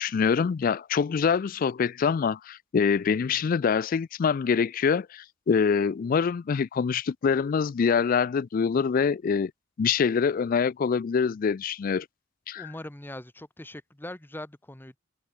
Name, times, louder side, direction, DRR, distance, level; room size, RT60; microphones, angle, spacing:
voice 1, 0.0-9.5 9.8-12.1 12.5-12.7, left 6 dB, 45° left, 0.3 m, -25 dB
voice 2, 12.5-15.0, left 1 dB, 10° left, 1.0 m, -41 dB
open air
head